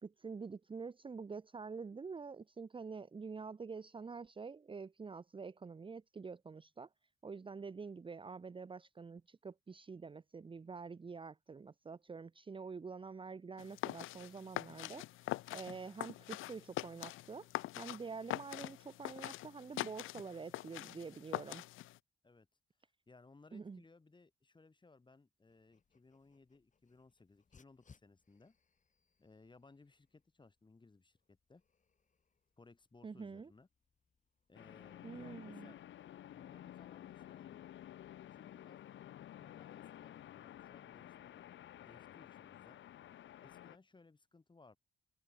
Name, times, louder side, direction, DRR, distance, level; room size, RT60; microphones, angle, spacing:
voice 1, 0.0-6.9 7.2-17.5 17.8-21.6 23.5-23.8 33.0-33.5 35.0-35.7, right 5 dB, 25° right, 0.9 m, -47 dB
sound 1, 13.6-22.0, left 17 dB, 90° left, 1.0 m, -44 dB
voice 2, 23.1-28.5 29.2-31.6 32.6-33.7 34.5-35.8 36.3-37.7 38.3-38.8 39.4-42.8 43.4-44.8, left 3 dB, 25° left, 6.7 m, -63 dB
Dog, 25.5-34.6, left 5 dB, 40° left, 7.2 m, -71 dB
sound 2, 34.5-43.8, left 12 dB, 70° left, 1.6 m, -53 dB
open air
cardioid pair, 90°, 20 cm